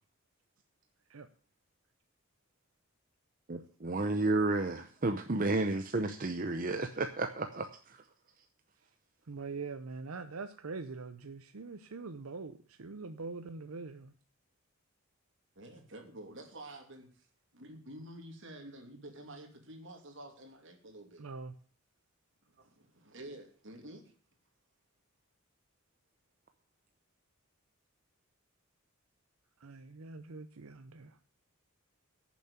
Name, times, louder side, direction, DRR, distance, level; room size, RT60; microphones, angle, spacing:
voice 1, 3.5-8.0, right 2 dB, 40° right, 7 dB, 0.7 m, -32 dB
voice 2, 9.3-14.1 21.2-21.5 29.6-31.2, right 4 dB, 80° right, 9 dB, 0.7 m, -43 dB
voice 3, 15.6-17.3 17.5-21.3 22.4-24.0, right 1 dB, 60° right, 4 dB, 2.8 m, -49 dB
10.0 x 7.3 x 8.7 m, 0.42 s
head